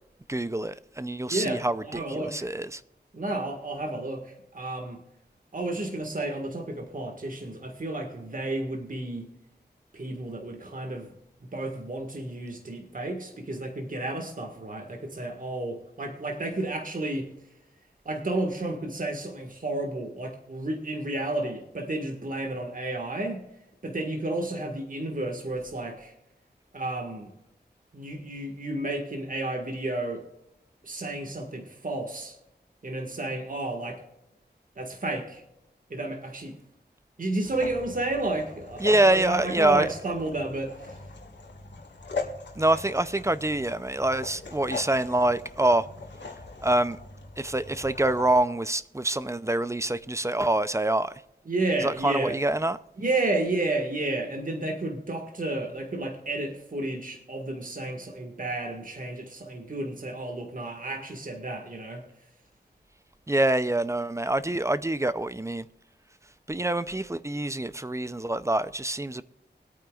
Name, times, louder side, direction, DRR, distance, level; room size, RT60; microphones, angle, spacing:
voice 1, 0.3-2.8 38.8-39.9 42.6-45.9 46.6-47.0 47.4-51.1 51.8-52.8 63.3-65.7 66.5-69.2, right 1 dB, 15° right, 0.5 m, -25 dB
voice 2, 1.3-2.5 3.1-5.0 5.5-9.3 9.9-11.1 11.5-17.3 18.1-23.4 23.8-26.1 26.7-27.3 27.9-30.2 30.8-32.4 32.8-34.0 34.8-35.4 35.9-36.6 37.2-41.0 51.5-52.4 53.0-62.0, right 2 dB, 50° right, 1.8 m, -32 dB
sound 1, 37.4-48.4, left 3 dB, 80° left, 1.8 m, -41 dB
24.0 x 9.0 x 2.4 m
wide cardioid pair, 85°, 18 cm